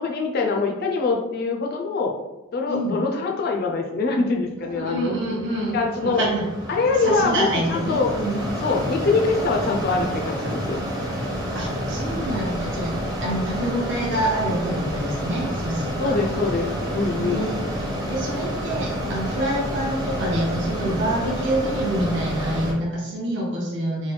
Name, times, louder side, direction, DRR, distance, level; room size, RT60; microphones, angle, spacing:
voice 1, 0.0-2.1 2.5-5.2 5.7-6.3 6.7-8.2 8.6-10.8 16.0-17.5, left 3 dB, 45° left, 2 dB, 0.3 m, -24 dB
voice 2, 4.6-5.8 6.0-6.5 7.0-8.4 11.5-16.2 17.2-17.6 17.8-24.1, right 1 dB, 55° right, -3 dB, 0.6 m, -27 dB
Mechanisms, 4.7-22.7, equal, 15° right, 0.6 m, -29 dB
sound 1, 6.8-22.1, right 1 dB, 80° right, 1.1 m, -43 dB
3.1 x 2.2 x 3.2 m, 1.0 s
head